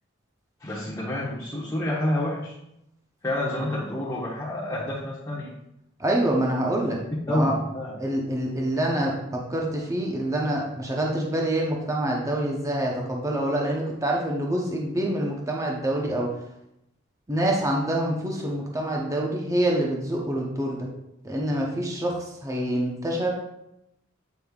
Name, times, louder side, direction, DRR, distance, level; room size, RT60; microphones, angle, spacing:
voice 1, 0.6-2.5 3.2-5.5 7.3-8.0, left 1 dB, 15° left, -8 dB, 1.1 m, -28 dB
voice 2, 6.0-7.0 7.3-7.5 8.0-16.3 17.3-20.9 21.2-23.3, right 1 dB, 15° right, -1 dB, 0.8 m, -26 dB
8.1 x 5.3 x 2.4 m, 0.83 s
head